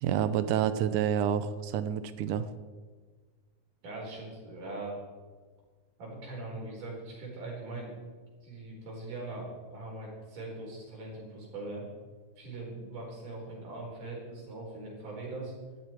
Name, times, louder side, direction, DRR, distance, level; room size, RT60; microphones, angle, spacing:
voice 1, 0.0-2.5, right 9 dB, 75° right, 12 dB, 1.9 m, -28 dB
voice 2, 3.8-5.0 6.0-8.0 8.4-11.9 12.4-15.5, right 2 dB, 60° right, -3 dB, 6.0 m, -41 dB
18.5 x 13.5 x 4.6 m, 1.4 s
omnidirectional pair, 4.3 m